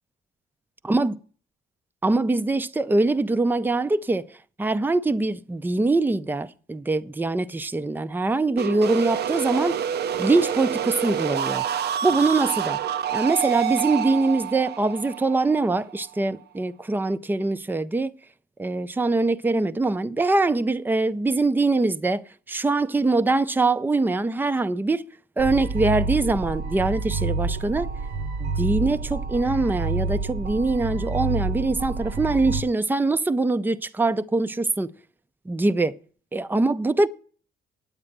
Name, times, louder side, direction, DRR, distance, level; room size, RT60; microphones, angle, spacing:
voice 1, 2.0-9.9 10.2-11.6 12.0-12.8 13.1-18.1 18.6-25.1 25.4-27.9 28.4-34.9 35.5-36.0 36.3-37.1, right 3 dB, 10° right, 0.5 m, -23 dB
sound 1, 8.6-16.3, right 9 dB, 55° right, 0.5 m, -28 dB
sound 2, 25.4-32.6, right 3 dB, 80° right, 1.0 m, -28 dB
8.8 x 8.7 x 6.6 m
cardioid pair, 90°, 20 cm